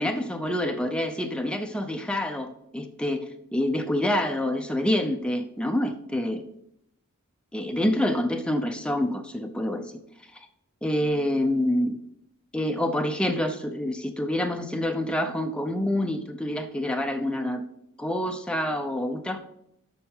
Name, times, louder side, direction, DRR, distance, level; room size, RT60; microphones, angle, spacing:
voice 1, 0.0-3.2 3.5-6.4 7.5-9.9 10.8-12.0 12.5-17.6 18.0-19.4, left 1 dB, 5° left, 5 dB, 0.6 m, -27 dB
7.0 x 6.4 x 5.5 m, 0.75 s
head